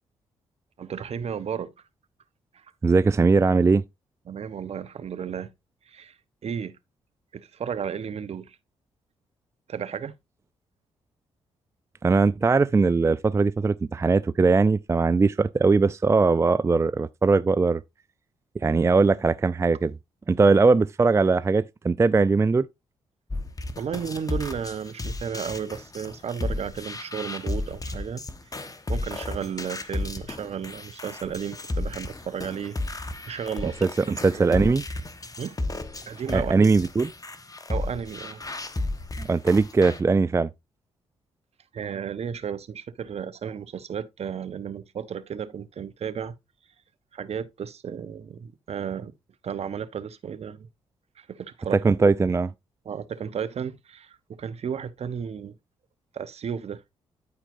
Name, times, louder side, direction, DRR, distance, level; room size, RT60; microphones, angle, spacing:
voice 1, 0.8-1.7 2.5-2.7 4.3-5.5 5.9-6.2 6.4-6.8 7.3-8.6 9.7-10.1 23.8-28.2 28.5-32.7 33.2-34.7 35.4-35.6 36.1-36.7 37.7-38.5 41.7-46.3 47.1-49.1 49.4-50.7 51.2-52.0 52.8-55.6 56.1-56.8, right 7 dB, 50° right, 0.8 m, -33 dB
voice 2, 2.8-3.8 12.0-17.8 18.6-19.9 20.3-22.7 33.8-33.9 34.2-34.8 36.3-37.1 39.2-40.5 51.8-52.5, right 4 dB, 20° right, 0.4 m, -20 dB
sound 1, 23.3-40.0, left 2 dB, 25° left, 1.2 m, -33 dB
13.0 x 4.4 x 2.5 m
hypercardioid pair, 45°, 13 cm